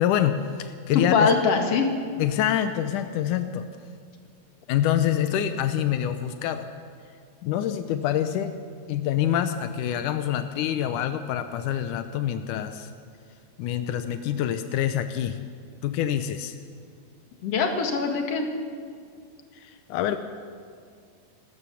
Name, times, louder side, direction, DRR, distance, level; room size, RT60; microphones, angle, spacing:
voice 1, 0.0-1.3 2.2-3.7 4.7-6.7 7.4-8.6 8.9-12.9 13.6-15.4 15.8-16.6 19.5-20.2, left 10 dB, 85° left, 9 dB, 1.7 m, -26 dB
voice 2, 0.9-1.9 17.4-18.5, left 5 dB, 45° left, 3 dB, 2.4 m, -22 dB
27.5 x 13.5 x 7.1 m, 2.2 s
omnidirectional pair, 4.7 m